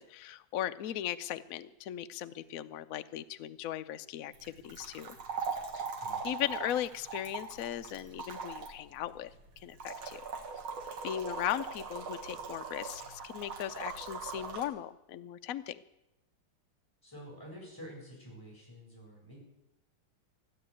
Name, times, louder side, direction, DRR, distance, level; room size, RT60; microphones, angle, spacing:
voice 1, 0.0-5.2 5.7-5.9 6.2-9.3 9.6-10.2 11.0-15.8, left 12 dB, 80° left, 10 dB, 0.7 m, -38 dB
sound 1, 4.3-14.7, right 5 dB, 75° right, 2.5 m, -41 dB
voice 2, 6.0-6.4 17.0-19.4, equal, 10° left, -2 dB, 7.5 m, -49 dB
15.5 x 10.5 x 8.4 m, 0.90 s
omnidirectional pair, 2.3 m